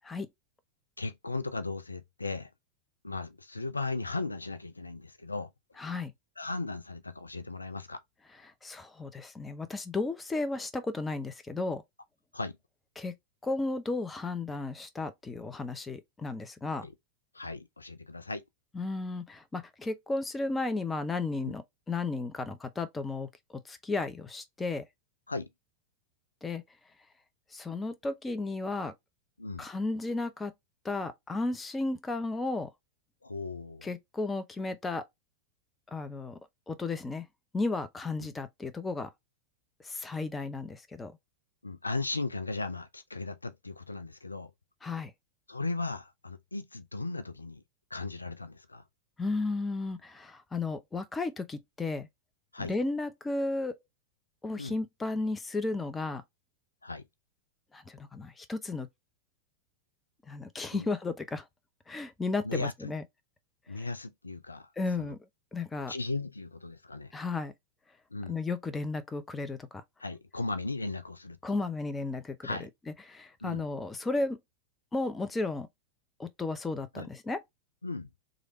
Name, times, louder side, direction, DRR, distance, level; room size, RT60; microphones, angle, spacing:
voice 1, 1.0-2.5 3.0-5.5 6.4-8.0 12.3-12.6 16.8-16.9 17.3-18.4 21.4-21.5 25.3-25.5 29.4-29.6 33.2-33.9 38.2-38.3 41.6-44.5 45.5-47.6 47.9-48.8 52.5-52.7 54.6-54.8 56.8-57.0 60.7-60.9 62.4-62.9 63.7-64.7 65.0-65.1 65.9-67.1 68.1-68.4 70.0-71.4 72.4-72.7 73.4-73.7 76.9-77.1 77.8-78.1, left 3 dB, 80° left, 0.4 m, -36 dB
voice 2, 5.8-6.1 8.6-11.8 13.0-13.1 13.4-16.9 18.7-23.3 23.7-24.9 26.4-26.6 27.5-28.9 29.6-30.5 30.8-32.7 33.8-35.0 35.9-36.4 36.7-37.3 37.5-39.1 39.8-41.1 44.8-45.1 49.2-52.1 52.6-53.8 54.4-56.2 57.7-58.9 60.3-61.4 61.9-63.0 64.8-65.2 65.5-65.9 67.1-67.5 68.3-69.8 71.4-72.6 73.1-74.4 74.9-75.7 76.2-77.4, left 3 dB, 15° left, 0.6 m, -34 dB
3.2 x 2.5 x 2.9 m
figure-of-eight pair, 90°, 0 cm